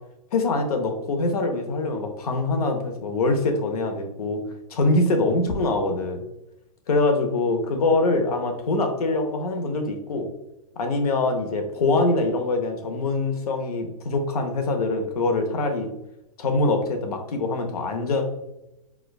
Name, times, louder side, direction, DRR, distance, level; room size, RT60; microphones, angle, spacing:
voice 1, 0.3-4.4 4.7-6.2 6.9-10.3 10.8-15.9 16.4-18.2, left 2 dB, 80° left, 5 dB, 0.8 m, -24 dB
4.5 x 2.3 x 2.3 m, 0.89 s
hypercardioid pair, 145°, 19 cm